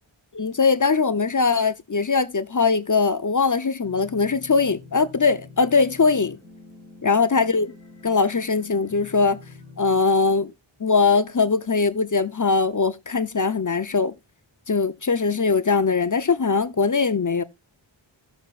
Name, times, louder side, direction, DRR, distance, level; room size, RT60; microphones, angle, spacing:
voice 1, 0.3-6.4 7.0-7.7 8.0-9.4 9.8-10.5 10.8-14.1 14.7-17.4, left 4 dB, 40° left, 0.6 m, -21 dB
sound 1, 3.8-10.0, left 4 dB, 10° left, 5.4 m, -46 dB
16.5 x 6.3 x 2.4 m
wide cardioid pair, 55°, 48 cm